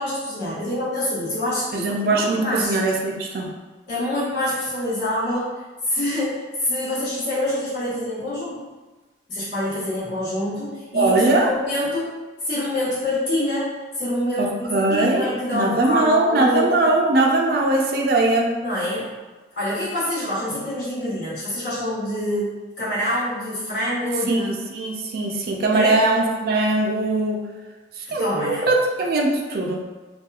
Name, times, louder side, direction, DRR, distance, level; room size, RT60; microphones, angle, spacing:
voice 1, 0.0-2.8 3.9-5.5 5.8-8.7 9.3-12.1 12.4-16.8 18.6-19.1 19.5-24.6 25.7-26.0 28.0-28.7, left 1 dB, 65° left, -10 dB, 1.2 m, -26 dB
voice 2, 1.7-3.5 10.9-11.5 14.4-18.5 24.3-27.4 28.0-29.8, right 2 dB, 55° right, 1 dB, 0.3 m, -21 dB
2.8 x 2.2 x 2.3 m, 1.2 s
head